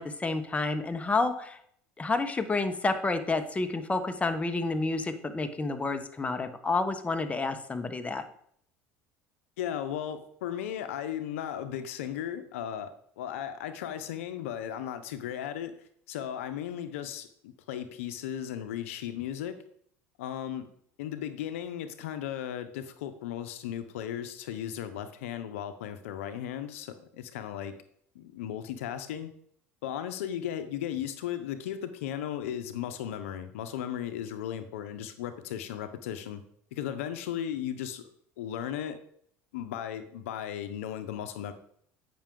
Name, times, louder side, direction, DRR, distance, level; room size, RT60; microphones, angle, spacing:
voice 1, 0.0-1.6 2.0-8.2, left 3 dB, 20° left, 7 dB, 1.0 m, -29 dB
voice 2, 9.6-15.7 16.1-19.6 20.2-20.7 21.0-27.7 28.1-29.3 29.8-36.4 36.7-38.0 38.4-39.0 39.5-41.5, left 10 dB, 85° left, 10 dB, 0.6 m, -36 dB
8.6 x 5.9 x 3.7 m, 0.65 s
hypercardioid pair, 80°, 7 cm